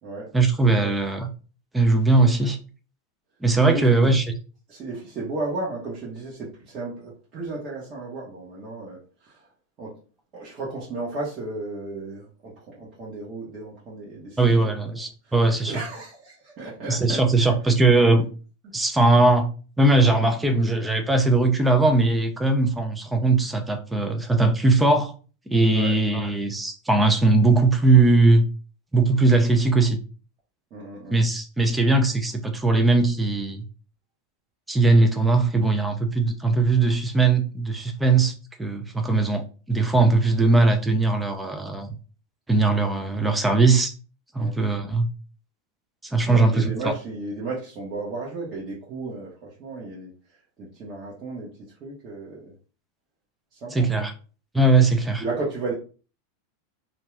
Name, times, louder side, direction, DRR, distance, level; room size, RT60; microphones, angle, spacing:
voice 1, 0.3-1.3 1.7-2.6 3.4-4.2 14.4-15.8 16.9-18.3 18.7-19.5 19.8-25.1 25.5-28.5 28.9-30.0 31.1-33.6 34.7-38.3 38.6-42.0 42.5-43.9 44.3-45.1 46.0-46.7 53.7-54.1 54.5-55.2, right 3 dB, 5° right, 0.4 m, -20 dB
voice 2, 3.6-4.1 4.7-9.5 9.8-9.9 10.3-14.7 15.2-15.3 15.6-17.5 25.7-25.9 30.7-31.2 44.4-44.5 46.3-50.1 50.6-51.5 51.8-52.5 53.5-53.9 55.2-55.7, right 2 dB, 40° right, 1.1 m, -34 dB
2.6 x 2.3 x 3.2 m
supercardioid pair, 130°, 0 cm